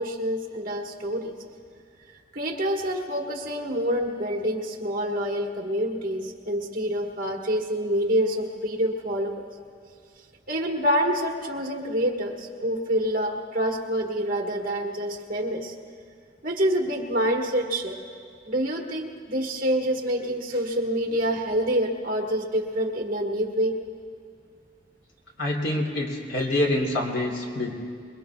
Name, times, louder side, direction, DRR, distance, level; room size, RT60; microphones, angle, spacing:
voice 1, 0.0-1.3 2.3-9.4 10.5-15.7 16.4-18.0 18.5-23.7, equal, 50° right, 1 dB, 1.6 m, -27 dB
voice 2, 25.4-27.7, left 1 dB, 85° left, -2 dB, 3.1 m, -26 dB
26.0 x 22.5 x 2.3 m, 2.2 s
head